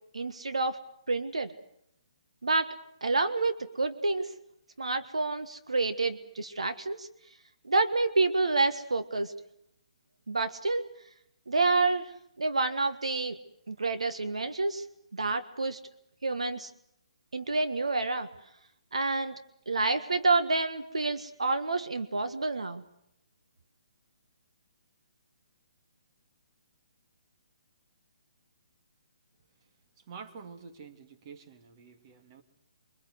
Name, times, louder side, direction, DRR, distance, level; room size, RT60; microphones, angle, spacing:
voice 1, 0.1-0.8 1.1-1.5 2.4-2.7 3.0-4.3 4.8-7.1 7.6-9.3 10.3-10.8 11.5-12.1 12.4-13.4 13.7-14.8 15.1-15.8 16.2-16.7 17.3-18.3 18.9-19.3 19.7-22.8, right 3 dB, 85° right, 9 dB, 1.5 m, -28 dB
voice 2, 30.1-32.4, right 5 dB, 40° right, 6 dB, 2.5 m, -48 dB
24.0 x 23.5 x 8.0 m, 0.75 s
figure-of-eight pair, 140°, 3 cm